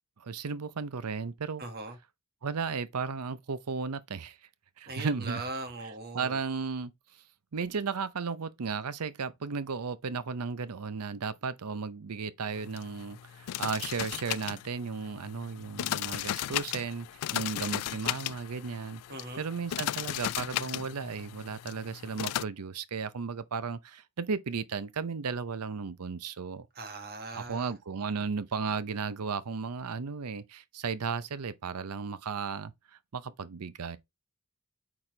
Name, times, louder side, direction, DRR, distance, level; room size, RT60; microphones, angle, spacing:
voice 1, 0.2-1.6 2.4-4.4 4.8-5.5 5.8-6.9 7.5-17.1 17.3-19.0 19.4-26.7 27.3-32.7 33.1-34.0, right 5 dB, 85° right, 0.7 m, -35 dB
voice 2, 1.6-2.0 4.9-6.4 19.1-19.5 26.7-27.7, right 2 dB, 45° right, 1.6 m, -40 dB
sound 1, 12.5-22.4, left 13 dB, 85° left, 0.3 m, -36 dB
8.8 x 4.3 x 3.2 m
head